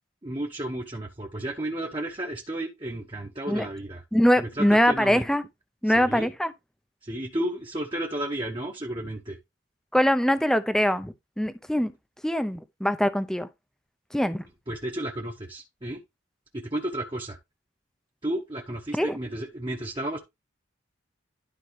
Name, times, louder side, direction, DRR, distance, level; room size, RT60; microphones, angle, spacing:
voice 1, 0.2-4.0 4.4-5.3 5.9-6.3 7.0-9.4 14.7-16.0 16.5-17.4 18.2-20.2, right 1 dB, 25° right, 1.0 m, -32 dB
voice 2, 4.1-5.5 5.8-6.5 9.9-11.9 12.2-13.5 14.1-14.4 18.9-19.2, equal, 5° left, 0.6 m, -23 dB
12.0 x 4.7 x 3.2 m
head